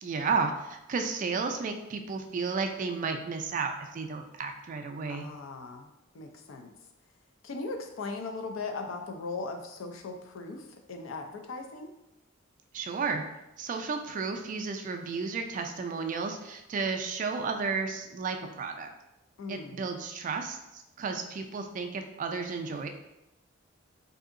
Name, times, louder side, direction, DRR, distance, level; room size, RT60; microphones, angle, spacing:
voice 1, 0.0-5.3 12.7-13.2 13.6-18.9 19.5-22.9, right 4 dB, 40° right, 5 dB, 0.3 m, -33 dB
voice 2, 5.1-6.7 7.4-11.9 19.4-19.8, left 3 dB, 75° left, 5 dB, 0.4 m, -39 dB
3.5 x 2.7 x 2.5 m, 0.92 s
head